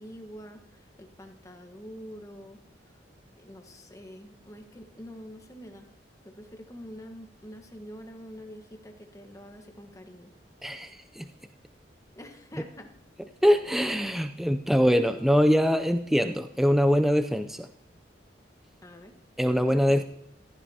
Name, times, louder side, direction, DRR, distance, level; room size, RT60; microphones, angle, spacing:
voice 1, 0.0-2.6 3.4-5.9 6.2-10.3 12.1-12.9 18.8-19.2 19.5-20.0, equal, 20° left, 4 dB, 1.3 m, -46 dB
voice 2, 10.6-11.3 13.4-17.7 19.4-20.0, equal, ahead, 8 dB, 0.4 m, -23 dB
14.5 x 14.5 x 2.8 m, 0.76 s
head